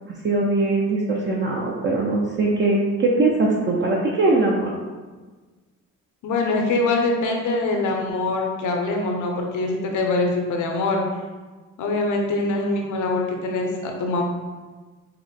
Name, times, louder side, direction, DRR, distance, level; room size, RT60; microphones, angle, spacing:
voice 1, 0.2-4.7, right 2 dB, 40° right, -3 dB, 0.6 m, -21 dB
voice 2, 6.2-11.0 11.8-14.2, left 2 dB, 75° left, 2 dB, 0.8 m, -23 dB
5.8 x 2.1 x 3.3 m, 1.3 s
cardioid pair, 90°, 30 cm